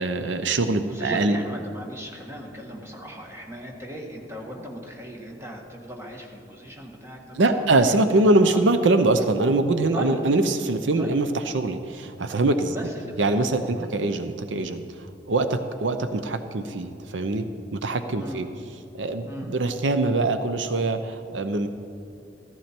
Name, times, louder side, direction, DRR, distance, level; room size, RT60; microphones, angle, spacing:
voice 1, 0.0-1.4 7.3-11.3 11.5-12.8 13.2-17.5 17.7-18.5 18.9-21.7, right 2 dB, 80° right, 9 dB, 0.7 m, -23 dB
voice 2, 0.8-7.8 8.5-8.6 9.1-9.2 9.9-10.2 10.9-11.2 12.7-13.2 13.7-13.9 17.1-17.3 18.2-18.4 19.3-19.5, equal, 15° right, 0 dB, 1.5 m, -37 dB
14.5 x 14.0 x 4.4 m, 2.5 s
head